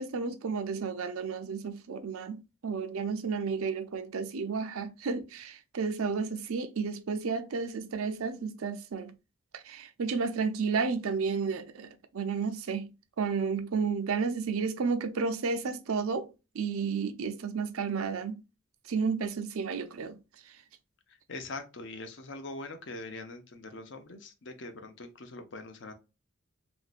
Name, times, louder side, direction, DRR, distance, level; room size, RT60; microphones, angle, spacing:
voice 1, 0.0-9.1 9.5-12.9 13.2-18.4 18.8-20.2 20.4-20.6, right 5 dB, 85° right, 0.5 m, -32 dB
voice 2, 21.1-25.9, left 2 dB, 55° left, 0.6 m, -43 dB
3.0 x 2.6 x 2.5 m
head